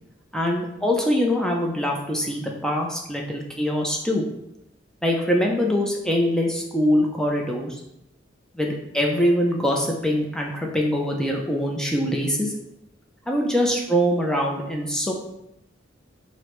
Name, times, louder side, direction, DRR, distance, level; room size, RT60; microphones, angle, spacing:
voice 1, 0.3-4.2 5.0-7.8 8.5-12.5 13.3-15.1, equal, 5° left, 0 dB, 0.4 m, -23 dB
4.7 x 2.0 x 3.0 m, 0.83 s
head